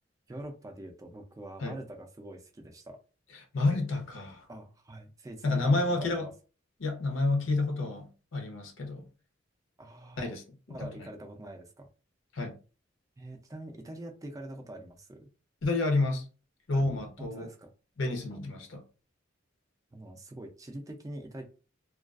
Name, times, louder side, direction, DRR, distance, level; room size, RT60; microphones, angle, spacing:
voice 1, 0.3-3.0 4.5-6.3 9.8-10.3 10.7-11.9 13.2-15.3 16.7-16.8 17.2-17.7 19.9-21.4, right 1 dB, 20° right, 0.4 m, -44 dB
voice 2, 3.5-4.5 5.4-6.2 6.8-9.1 10.2-10.4 10.8-11.1 12.3-12.6 15.6-16.3 16.7-17.5 18.0-18.8, left 2 dB, 90° left, 0.7 m, -29 dB
2.3 x 2.3 x 2.3 m
head